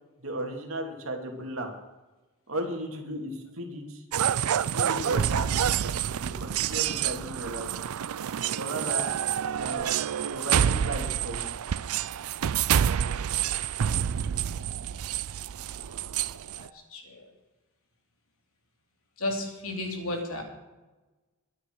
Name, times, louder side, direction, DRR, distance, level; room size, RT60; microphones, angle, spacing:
voice 1, 0.2-1.7 2.5-4.0 4.7-7.7 8.6-9.1 9.6-9.9 10.3-11.5, right 1 dB, 70° right, 2 dB, 2.6 m, -35 dB
sound 1, 4.1-16.7, right 9 dB, 85° right, 0.4 m, -28 dB
voice 2, 15.6-17.3 19.2-20.4, left 2 dB, 75° left, 2 dB, 3.1 m, -35 dB
23.0 x 9.0 x 4.7 m, 1.1 s
head